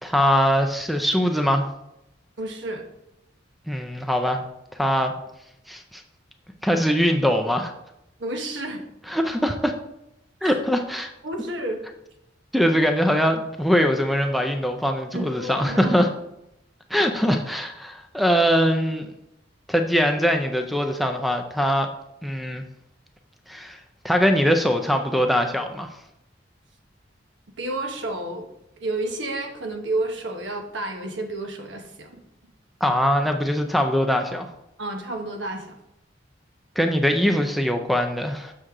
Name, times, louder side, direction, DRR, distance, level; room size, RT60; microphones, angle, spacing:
voice 1, 0.0-1.7 3.7-4.4 4.7-5.1 5.7-6.0 6.6-7.7 9.1-9.7 10.4-11.1 12.5-16.1 16.9-19.1 19.7-21.9 22.2-22.6 23.5-23.8 24.0-25.9 32.8-34.5 36.8-38.5, equal, ahead, 5 dB, 0.4 m, -22 dB
voice 2, 2.4-2.9 8.2-8.8 10.4-10.6 11.2-11.8 15.1-16.0 27.6-28.5 28.8-32.2 34.8-35.8, right 2 dB, 75° right, 4 dB, 1.1 m, -30 dB
6.5 x 6.2 x 3.7 m, 0.83 s
head